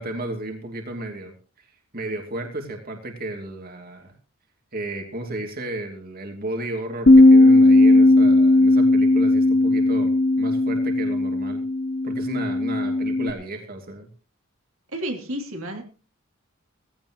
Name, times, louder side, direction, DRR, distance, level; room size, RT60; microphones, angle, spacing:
voice 1, 0.0-1.3 1.6-1.7 1.9-4.1 4.7-11.6 12.0-14.1, right 1 dB, 40° right, 2.8 m, -33 dB
Bass guitar, 7.1-13.3, left 2 dB, 45° left, 0.9 m, -16 dB
voice 2, 14.9-15.8, equal, 70° right, 3.1 m, -31 dB
18.0 x 16.0 x 3.1 m
head